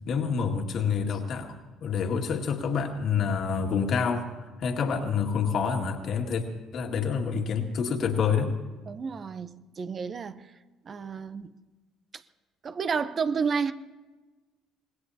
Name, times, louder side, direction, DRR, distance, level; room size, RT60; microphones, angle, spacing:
voice 1, 0.1-4.3 4.6-6.5 6.7-8.5, left 6 dB, 60° left, 2.1 m, -27 dB
voice 2, 8.9-10.5 10.8-11.6 12.1-12.2 12.6-13.7, right 5 dB, 45° right, 0.7 m, -31 dB
25.5 x 19.5 x 2.9 m
hypercardioid pair, 60°, 0 cm